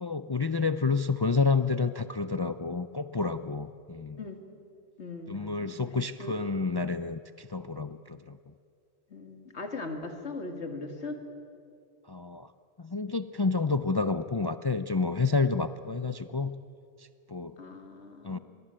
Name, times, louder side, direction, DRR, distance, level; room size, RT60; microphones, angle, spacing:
voice 1, 0.0-4.2 5.3-8.4 12.1-12.5 12.8-16.5 17.0-17.6 18.2-18.4, left 4 dB, 30° left, 12 dB, 0.4 m, -29 dB
voice 2, 5.0-5.8 6.2-6.3 9.1-11.2 17.6-18.4, left 3 dB, 80° left, 5 dB, 2.5 m, -39 dB
24.0 x 19.5 x 8.9 m, 2.4 s
omnidirectional pair, 1.1 m